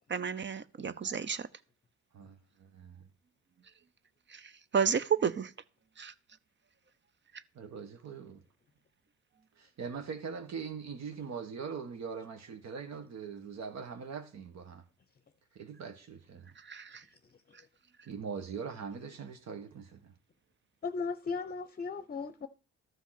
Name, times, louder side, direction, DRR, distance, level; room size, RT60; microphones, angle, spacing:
voice 1, 0.1-1.5 4.3-4.4 4.7-5.5 6.0-6.1 16.7-17.0, right 7 dB, 40° right, 0.7 m, -31 dB
voice 2, 2.1-3.1 7.5-8.4 9.6-14.8 15.5-16.5 18.0-20.1, right 6 dB, 60° right, 1.5 m, -42 dB
voice 3, 20.8-22.5, left 4 dB, 30° left, 0.7 m, -36 dB
13.0 x 5.8 x 5.9 m
cardioid pair, 90°, 30 cm